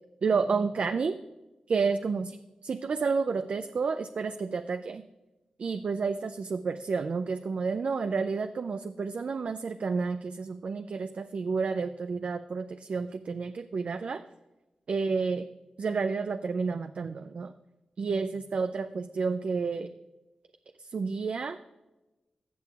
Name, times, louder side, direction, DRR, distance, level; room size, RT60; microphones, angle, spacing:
voice 1, 0.2-1.1 1.7-2.2 2.7-5.0 5.6-14.2 14.9-15.5 15.8-17.5 18.0-19.9 20.9-21.6, right 4 dB, 65° right, 8 dB, 0.4 m, -30 dB
16.0 x 6.4 x 2.4 m, 1.1 s
cardioid pair, 45°, 2 cm